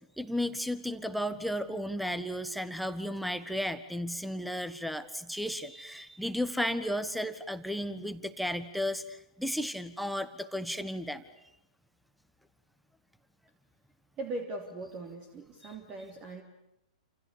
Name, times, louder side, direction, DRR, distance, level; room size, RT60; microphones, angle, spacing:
voice 1, 0.2-11.2, equal, ahead, 13 dB, 1.5 m, -34 dB
voice 2, 14.2-16.4, right 2 dB, 25° right, 4 dB, 3.3 m, -40 dB
29.0 x 28.0 x 6.9 m, 0.85 s
figure-of-eight pair, 105°, 3 cm